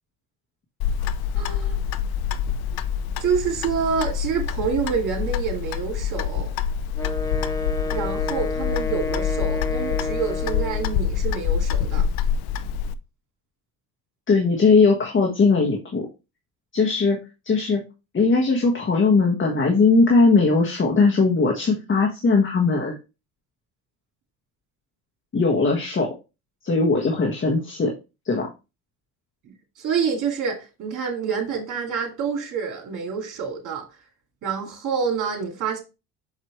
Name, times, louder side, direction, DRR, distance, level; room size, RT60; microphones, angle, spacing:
Clock, 0.8-12.9, left 8 dB, 75° left, 0.7 m, -26 dB
voice 1, 1.3-1.8 3.2-6.5 7.9-12.1 29.5-33.8 34.4-35.8, right 6 dB, 55° right, 2.4 m, -27 dB
Wind instrument woodwind instrument, 6.9-11.0, left 2 dB, 10° left, 0.7 m, -30 dB
voice 2, 14.3-16.1 16.7-17.2 17.5-17.8 18.1-23.0 25.3-26.1 26.6-27.9 28.3-28.5, left 4 dB, 30° left, 1.6 m, -19 dB
6.5 x 4.7 x 3.1 m
cardioid pair, 100°, 38 cm